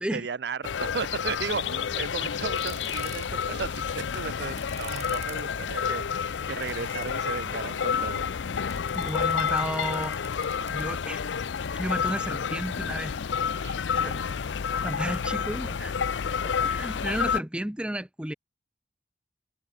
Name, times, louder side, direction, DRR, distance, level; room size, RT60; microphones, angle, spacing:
voice 1, 0.1-8.3 10.6-10.7 13.6-14.2, right 5 dB, 65° right, 0.5 m, -35 dB
sound 1, 0.6-17.4, left 7 dB, 85° left, 0.5 m, -30 dB
sound 2, 2.2-16.6, right 7 dB, 40° right, 3.0 m, -52 dB
voice 2, 8.9-10.1 10.7-13.1 13.9-14.2 14.8-15.9 16.3-18.3, right 1 dB, 5° right, 0.5 m, -33 dB
head